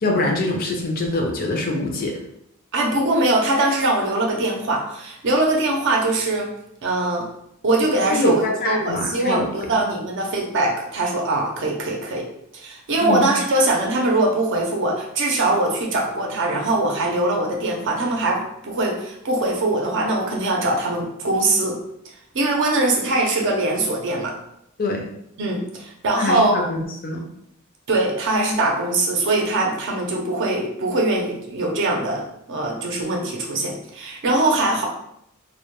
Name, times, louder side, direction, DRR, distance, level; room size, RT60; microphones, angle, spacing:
voice 1, 0.0-2.2 8.1-9.5 13.0-13.3 24.8-25.1 26.2-27.2, left 1 dB, 45° left, 1 dB, 0.5 m, -24 dB
voice 2, 2.7-6.5 6.8-7.3 7.6-12.3 12.5-21.8 22.3-24.4 25.4-26.7 27.9-34.9, right 2 dB, 60° right, 0 dB, 0.5 m, -22 dB
2.1 x 2.1 x 2.9 m, 0.77 s
head